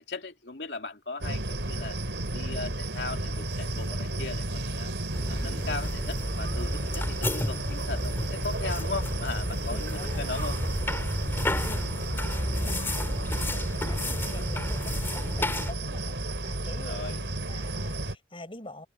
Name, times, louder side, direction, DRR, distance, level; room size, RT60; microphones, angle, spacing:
voice 1, 0.0-2.0 2.3-4.9 5.3-10.6 16.8-17.3, left 3 dB, 70° left, 2.8 m, -38 dB
sound 1, 1.2-18.2, right 1 dB, 85° right, 4.1 m, -33 dB
sound 2, 5.1-15.7, left 1 dB, 15° left, 3.9 m, -32 dB
voice 2, 9.7-10.3 11.6-16.2 16.4-18.9, left 1 dB, 30° left, 7.1 m, -45 dB
open air
head